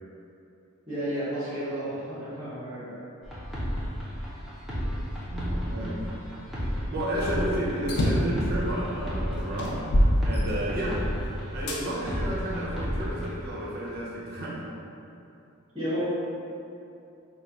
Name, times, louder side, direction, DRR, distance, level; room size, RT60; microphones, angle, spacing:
voice 1, 0.9-3.0 15.7-16.1, equal, 20° right, -12 dB, 0.9 m, -32 dB
sound 1, 3.2-13.3, equal, ahead, 0.5 m, -33 dB
voice 2, 5.3-6.0 6.9-9.8 10.2-11.0 11.5-14.6, right 1 dB, 50° right, -5 dB, 0.5 m, -31 dB
sound 2, 7.8-8.4 9.0-9.1 9.6-11.0 11.7-11.8 12.5-13.6, equal, 55° left, 0.5 m, -25 dB
3.1 x 2.2 x 3.8 m, 2.7 s
head